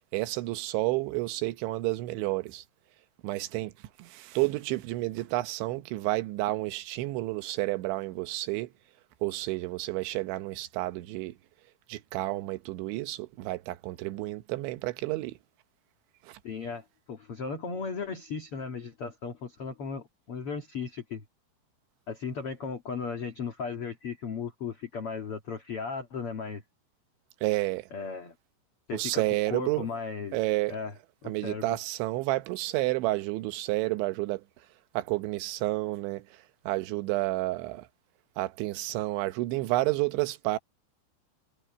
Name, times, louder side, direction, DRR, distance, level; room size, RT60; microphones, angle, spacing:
voice 1, 0.1-2.6 3.2-3.7 4.0-8.7 9.2-11.3 11.9-15.4 16.2-16.4 27.4-27.9 28.9-29.9 30.3-30.8 31.2-34.4 34.9-37.9 38.4-40.6, right 19 dB, 90° right, 3.3 m, -30 dB
voice 2, 16.4-21.2 22.1-26.6 27.9-28.3 28.9-30.4 30.7-30.9 31.2-31.8, left 5 dB, 45° left, 1.9 m, -36 dB
omnidirectional pair, 5.2 m